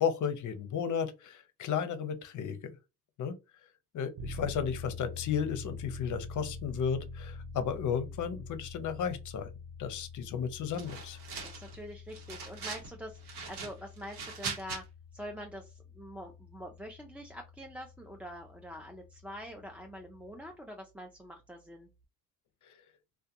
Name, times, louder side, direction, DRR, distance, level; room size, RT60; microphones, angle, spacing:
voice 1, 0.0-2.8 3.2-3.4 3.9-9.5 9.8-11.2 22.6-22.7, left 7 dB, 50° left, 0.6 m, -33 dB
sound 1, 4.2-20.5, left 3 dB, 70° right, 0.6 m, -46 dB
sound 2, 10.7-11.8 12.1-12.9 13.2-14.8, right 5 dB, 90° right, 1.0 m, -41 dB
voice 2, 11.4-14.8 15.1-21.9, equal, 5° right, 0.3 m, -45 dB
2.4 x 2.2 x 2.7 m
cardioid pair, 85°, 38 cm